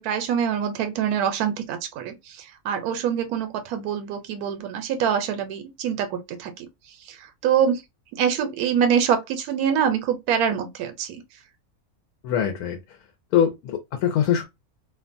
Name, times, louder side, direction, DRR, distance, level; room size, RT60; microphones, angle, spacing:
voice 1, 0.0-6.7 7.1-7.8 8.1-11.2, right 8 dB, 85° right, 1.1 m, -25 dB
voice 2, 12.2-12.8 13.3-14.4, left 9 dB, 90° left, 1.1 m, -22 dB
2.7 x 2.1 x 2.5 m
omnidirectional pair, 1.6 m